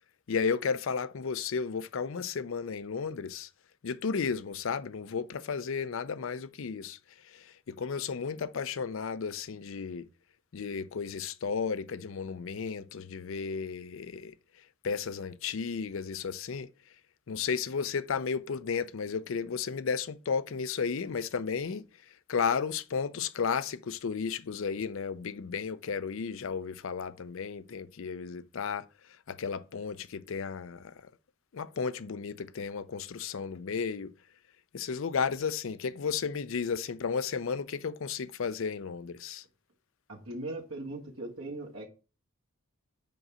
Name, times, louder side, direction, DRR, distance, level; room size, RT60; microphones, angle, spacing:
voice 1, 0.3-3.5 3.8-7.0 7.2-10.1 10.5-14.3 14.8-16.7 17.3-31.1 31.5-34.1 34.7-39.4, left 6 dB, 65° left, 0.5 m, -33 dB
voice 2, 40.1-41.9, right 2 dB, 75° right, 1.5 m, -39 dB
5.3 x 4.9 x 5.5 m
head